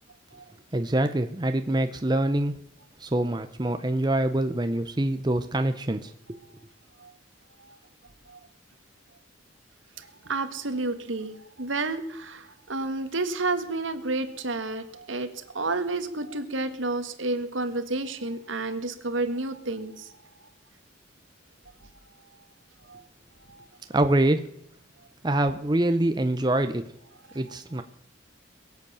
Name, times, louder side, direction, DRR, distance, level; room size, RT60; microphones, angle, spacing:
voice 1, 0.7-2.5 3.0-6.4 23.9-24.5 25.2-26.8 27.3-27.8, right 1 dB, 20° right, 8 dB, 0.7 m, -25 dB
voice 2, 10.0-20.1 22.1-22.3 22.9-23.0 23.4-23.6 27.3-27.4, right 2 dB, 80° right, 9 dB, 1.6 m, -31 dB
22.0 x 8.2 x 7.0 m, 0.74 s
head